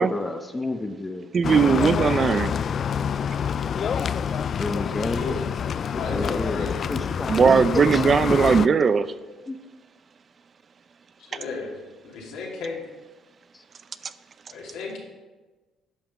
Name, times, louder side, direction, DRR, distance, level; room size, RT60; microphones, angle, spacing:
voice 1, 0.1-1.3 4.6-5.3 5.9-8.0 8.3-8.4 9.5-9.6, left 2 dB, 20° left, 6 dB, 0.9 m, -30 dB
voice 2, 1.3-2.5 7.3-9.0, right 5 dB, 45° right, 13 dB, 0.5 m, -19 dB
sound 1, 1.4-8.7, left 7 dB, 55° left, 0.3 m, -27 dB
voice 3, 5.9-6.8 11.2-11.7 12.0-12.8 14.5-15.0, left 4 dB, 80° left, -2 dB, 2.6 m, -33 dB
11.0 x 5.8 x 5.4 m, 1.2 s
supercardioid pair, 65°, 0 cm